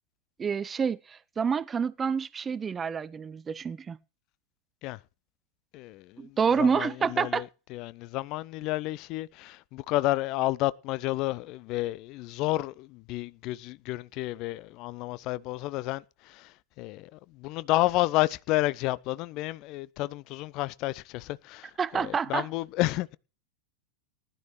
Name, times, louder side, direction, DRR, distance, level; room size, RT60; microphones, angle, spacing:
voice 1, 0.4-4.0 6.2-7.4 21.8-22.5, right 6 dB, 20° right, 0.5 m, -28 dB
voice 2, 5.7-23.2, left 18 dB, 40° left, 0.6 m, -31 dB
19.0 x 11.5 x 3.2 m
figure-of-eight pair, 90°, 0 cm